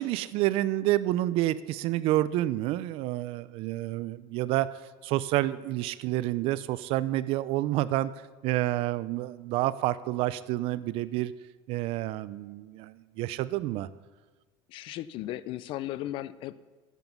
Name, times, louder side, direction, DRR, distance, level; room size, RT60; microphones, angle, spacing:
voice 1, 0.0-4.7 5.0-8.1 8.4-11.3 11.7-13.9, right 15 dB, 55° right, 17 dB, 0.4 m, -29 dB
voice 2, 14.7-16.6, left 14 dB, 50° left, 17 dB, 0.4 m, -36 dB
9.2 x 8.0 x 7.0 m, 1.3 s
cardioid pair, 140°, 12 cm